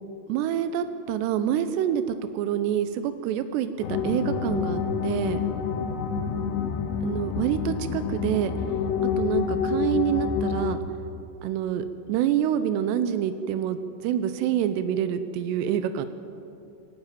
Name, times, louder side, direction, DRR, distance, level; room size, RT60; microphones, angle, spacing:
voice 1, 0.3-5.4 7.0-8.5 9.2-10.8 11.4-16.1, right 10 dB, 85° right, 10 dB, 2.4 m, -27 dB
sound 1, 3.8-10.8, left 6 dB, 70° left, 3.1 m, -28 dB
26.0 x 12.5 x 9.1 m, 2.7 s
omnidirectional pair, 5.9 m